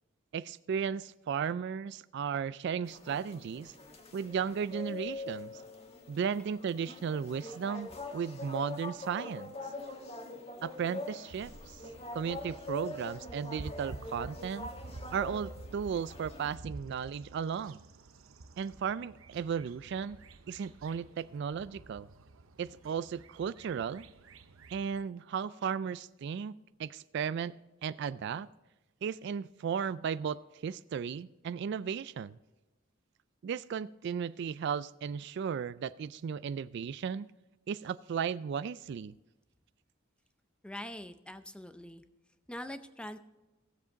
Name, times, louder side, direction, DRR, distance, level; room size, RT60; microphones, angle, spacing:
voice 1, 0.3-3.7 4.1-5.5 6.1-9.5 10.6-11.8 12.1-14.7 15.1-17.8 18.6-20.2 20.5-22.1 22.6-24.1 24.7-28.5 29.0-32.4 33.4-37.3 37.7-39.1, right 7 dB, 60° right, 17 dB, 0.3 m, -35 dB
sound 1, 2.9-16.6, left 2 dB, 30° left, 1.3 m, -44 dB
sound 2, 11.3-25.0, right 2 dB, 90° right, 0.7 m, -50 dB
voice 2, 40.6-42.0 42.5-43.2, left 1 dB, 5° left, 10 dB, 0.6 m, -43 dB
16.5 x 7.5 x 3.9 m, 1.1 s
head